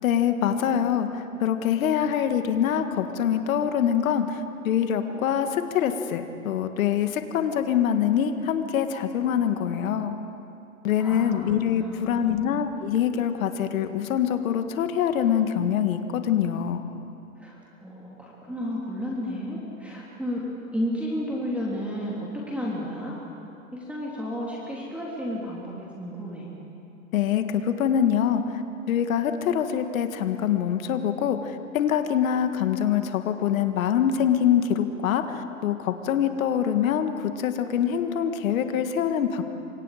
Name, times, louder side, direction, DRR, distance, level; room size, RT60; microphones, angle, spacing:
voice 1, 0.0-10.2 10.8-16.8 27.1-28.6 28.9-39.4, left 9 dB, 70° left, 7 dB, 1.8 m, -24 dB
voice 2, 10.9-11.4 11.7-12.4 17.4-20.4 20.7-23.2 23.7-26.5, equal, 5° right, -5 dB, 3.2 m, -32 dB
29.0 x 25.5 x 5.0 m, 2.8 s
hypercardioid pair, 125°, 42 cm